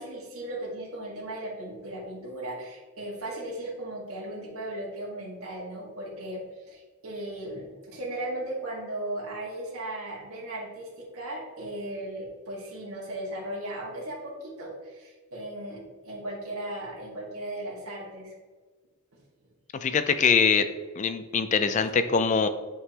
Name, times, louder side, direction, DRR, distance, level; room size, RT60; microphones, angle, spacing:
voice 1, 0.0-18.3 21.8-21.9, right 1 dB, 75° right, -5 dB, 1.7 m, -37 dB
voice 2, 19.8-20.7 21.0-22.5, left 5 dB, 35° left, 10 dB, 0.3 m, -23 dB
9.5 x 3.7 x 2.9 m, 1.3 s
head